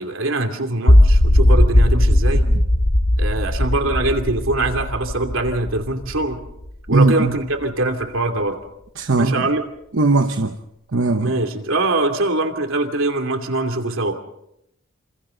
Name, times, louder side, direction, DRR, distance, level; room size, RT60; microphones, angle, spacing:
voice 1, 0.0-2.5 3.2-6.4 6.9-8.6 9.2-9.6 11.2-14.1, right 2 dB, 90° right, 5 dB, 2.8 m, -23 dB
sound 1, 0.9-7.0, left 1 dB, 80° left, 2.2 m, -17 dB
voice 2, 6.9-7.4 9.0-9.5 9.9-10.6 10.9-11.3, right 3 dB, 70° right, 7 dB, 1.0 m, -18 dB
28.0 x 27.5 x 3.9 m, 0.79 s
head